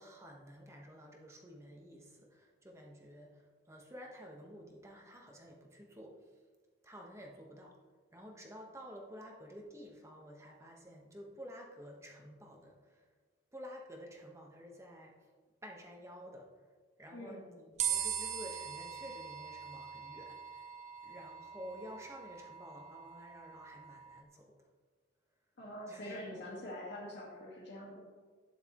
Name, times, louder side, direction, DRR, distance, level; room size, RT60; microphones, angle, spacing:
voice 1, 0.0-6.1 6.8-7.7 8.1-13.0 13.5-15.1 15.6-16.5 17.0-20.7 21.0-24.4 25.9-26.4, equal, 15° right, 0 dB, 1.3 m, -51 dB
voice 2, 17.1-17.4 25.6-28.1, left 1 dB, 55° left, -5 dB, 1.8 m, -45 dB
sound 1, 17.8-24.2, right 8 dB, 35° right, 0.6 m, -41 dB
12.5 x 9.4 x 3.1 m, 1.4 s
head